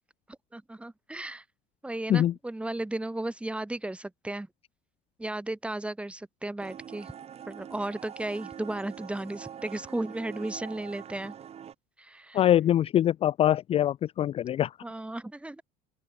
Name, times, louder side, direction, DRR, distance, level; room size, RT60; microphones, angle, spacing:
voice 1, 0.5-1.4 1.8-4.5 5.2-7.1 7.5-11.4 12.0-12.4 14.8-15.6, right 1 dB, 5° right, 1.9 m, -35 dB
sound 1, 6.6-11.8, right 9 dB, 35° right, 3.0 m, -44 dB
voice 2, 12.3-14.7, left 11 dB, 35° left, 0.4 m, -23 dB
open air
supercardioid pair, 115°, 17 cm